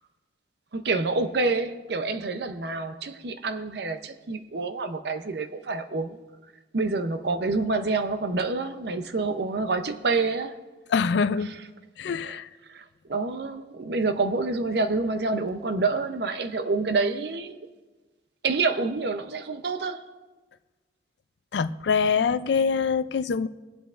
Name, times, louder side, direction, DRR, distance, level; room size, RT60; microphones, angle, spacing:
voice 1, 0.7-6.2 6.7-10.6 12.2-12.4 12.7-17.6 18.4-20.0, right 3 dB, 60° right, 0.6 m, -27 dB
voice 2, 10.9-11.5 12.0-12.5 21.5-23.5, left 5 dB, 70° left, 0.4 m, -24 dB
23.0 x 7.9 x 2.5 m
head